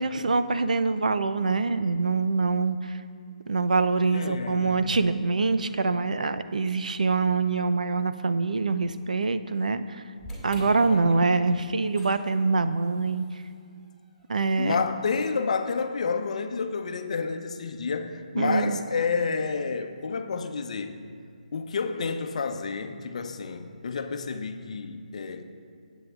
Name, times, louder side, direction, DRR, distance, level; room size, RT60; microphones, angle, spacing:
voice 1, 0.0-3.0 3.5-10.0 10.4-13.3 14.3-14.8 18.4-18.8, right 4 dB, 70° right, 0.5 m, -25 dB
voice 2, 4.1-4.9 10.9-11.3 14.6-21.0 21.5-25.4, left 5 dB, 55° left, 0.7 m, -30 dB
sound 1, 10.2-16.5, equal, ahead, 2.0 m, -48 dB
16.0 x 8.0 x 2.4 m
figure-of-eight pair, 145°, 4 cm